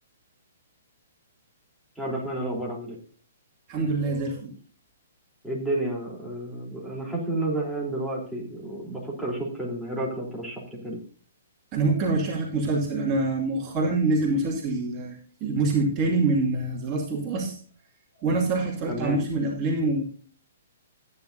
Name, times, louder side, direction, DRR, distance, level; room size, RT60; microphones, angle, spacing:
voice 1, 2.0-3.0 5.4-11.0 18.9-19.2, right 1 dB, ahead, -4 dB, 3.6 m, -31 dB
voice 2, 3.7-4.5 11.7-17.6 18.2-20.0, right 3 dB, 30° right, -2 dB, 2.5 m, -25 dB
14.0 x 9.8 x 2.7 m, 0.42 s
figure-of-eight pair, 120°, 0 cm